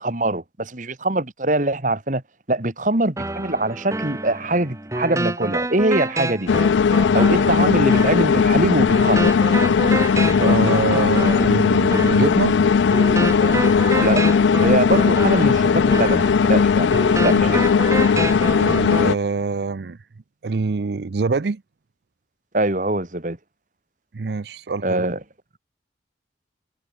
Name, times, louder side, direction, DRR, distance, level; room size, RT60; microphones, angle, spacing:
voice 1, 0.0-2.2 2.5-6.5 7.1-9.3 14.0-14.2 14.6-17.6 22.5-23.4 24.8-25.2, right 2 dB, 45° right, 2.4 m, -23 dB
sound 1, 3.2-19.1, right 2 dB, 15° right, 1.3 m, -28 dB
sound 2, 6.5-19.1, left 6 dB, 90° left, 0.4 m, -17 dB
voice 2, 10.4-12.6 18.6-20.0 20.4-21.6 24.1-25.1, right 4 dB, 65° right, 0.5 m, -24 dB
head